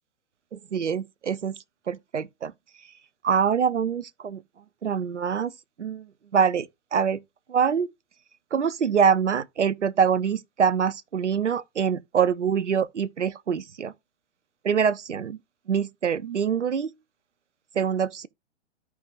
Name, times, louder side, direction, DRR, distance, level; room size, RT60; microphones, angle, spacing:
voice 1, 0.7-1.5 1.9-2.5 3.2-4.4 4.8-5.5 5.8-6.1 6.3-7.2 7.5-7.9 8.5-13.9 14.6-15.4 15.7-16.9 17.7-18.3, right 7 dB, 75° right, 0.8 m, -24 dB
14.0 x 4.8 x 2.5 m
figure-of-eight pair, 115°, 36 cm